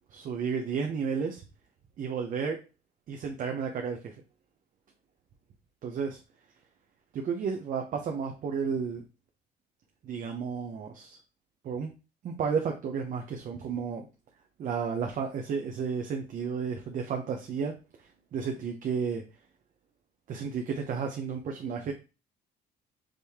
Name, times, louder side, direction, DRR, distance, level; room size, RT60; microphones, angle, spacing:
voice 1, 0.1-1.4 2.0-2.6 3.1-4.1 5.8-6.2 7.1-9.0 10.0-11.2 11.6-11.9 12.2-14.1 14.6-17.7 18.3-19.2 20.3-21.9, right 6 dB, 50° right, 3 dB, 0.8 m, -32 dB
5.1 x 2.7 x 3.5 m, 0.30 s
cardioid pair, 110°, 17 cm